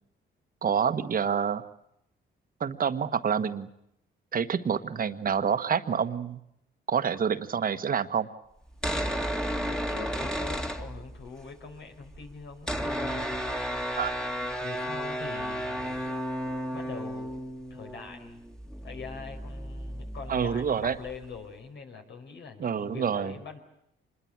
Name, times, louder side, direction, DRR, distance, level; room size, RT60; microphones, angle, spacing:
voice 1, 0.6-1.6 2.6-3.7 4.3-6.4 6.9-8.3 14.0-14.1 20.3-21.0 22.6-23.3, right 7 dB, 45° right, 10 dB, 1.5 m, -27 dB
sound 1, 8.7-11.4 11.7-11.8 11.9-21.4, equal, 5° left, 2.2 m, -33 dB
voice 2, 8.9-13.7 14.6-16.1 16.7-17.4 17.7-18.4 18.8-23.6, left 5 dB, 65° left, 4 dB, 5.0 m, -44 dB
26.0 x 21.0 x 8.9 m, 0.78 s
cardioid pair, 90°, 20 cm